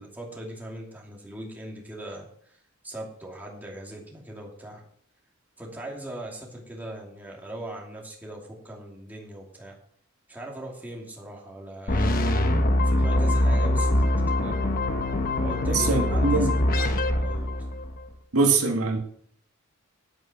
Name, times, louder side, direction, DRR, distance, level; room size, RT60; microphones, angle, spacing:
voice 1, 0.0-2.3 2.8-4.8 5.6-9.8 10.3-14.6 15.4-17.5, right 1 dB, 10° right, -2 dB, 2.6 m, -40 dB
sound 1, 11.9-18.0, left 1 dB, 40° left, 1.1 m, -23 dB
voice 2, 15.7-16.5 18.3-19.0, right 4 dB, 85° right, 2 dB, 1.9 m, -22 dB
9.8 x 9.0 x 6.0 m, 0.64 s
head